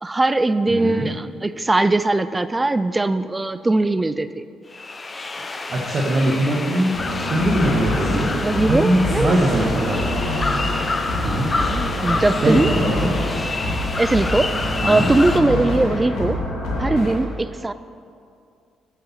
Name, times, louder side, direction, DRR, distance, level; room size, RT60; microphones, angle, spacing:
voice 1, 0.0-4.5 8.3-9.4 11.7-12.7 14.0-14.5 14.9-16.4 16.8-17.7, right 2 dB, 20° right, 13 dB, 0.3 m, -20 dB
voice 2, 0.7-1.1 5.4-6.9 7.3-8.3 8.6-10.0 11.2-11.5 12.4-13.1 14.8-15.1, right 1 dB, 45° right, -3 dB, 1.4 m, -21 dB
sound 1, 4.7-15.4, left 3 dB, 25° left, 0.6 m, -28 dB
sound 2, 6.9-17.1, left 1 dB, 85° left, 2.0 m, -26 dB
8.8 x 7.0 x 5.7 m, 2.4 s
cardioid pair, 90°, 0 cm